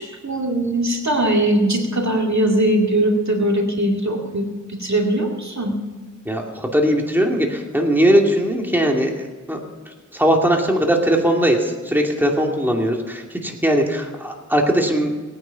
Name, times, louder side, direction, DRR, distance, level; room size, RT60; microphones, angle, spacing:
voice 1, 0.0-5.7, right 1 dB, 60° right, 1 dB, 2.3 m, -20 dB
voice 2, 6.3-9.1 9.5-9.6 10.1-15.1, equal, 5° right, 1 dB, 2.4 m, -19 dB
19.0 x 9.6 x 5.8 m, 1.4 s
wide cardioid pair, 40°, 31 cm